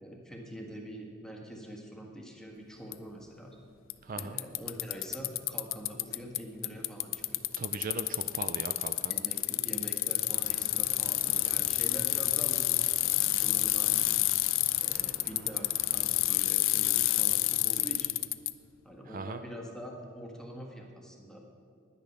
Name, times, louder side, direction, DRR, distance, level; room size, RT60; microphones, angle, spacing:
voice 1, 0.0-3.5 4.1-7.4 9.1-14.1 14.8-18.1 18.8-21.4, equal, 5° left, 0 dB, 1.7 m, -44 dB
Bicycle, 2.9-3.0 3.9-4.0 4.2-6.4 6.6-18.5, left 17 dB, 80° left, 0.4 m, -28 dB
voice 2, 4.0-4.4 7.6-9.1 19.1-19.4, right 3 dB, 45° right, 8 dB, 0.5 m, -39 dB
sound 1, 10.3-16.2, right 1 dB, 65° right, 2.1 m, -52 dB
10.5 x 10.0 x 6.7 m, 2.4 s
head